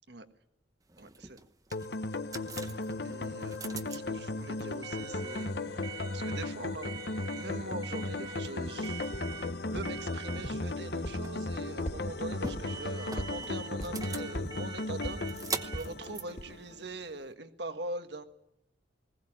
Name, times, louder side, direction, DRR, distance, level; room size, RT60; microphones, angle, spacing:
sound 1, 0.9-17.3, right 5 dB, 20° right, 1.0 m, -44 dB
voice 1, 1.0-1.4 2.7-6.9 7.3-9.1 9.6-18.2, right 2 dB, 65° right, 8 dB, 1.6 m, -43 dB
sound 2, 1.7-16.8, left 2 dB, 60° left, 1.0 m, -36 dB
sound 3, 9.1-9.2 9.8-9.9 10.4-10.5 11.0-11.1 11.5-12.0 12.6-12.7 13.2-13.3 13.8-13.9 14.3-14.4 15.0-15.1 15.7-15.8 16.4-16.5, equal, 40° left, 2.6 m, -37 dB
20.0 x 17.0 x 8.8 m, 0.84 s
head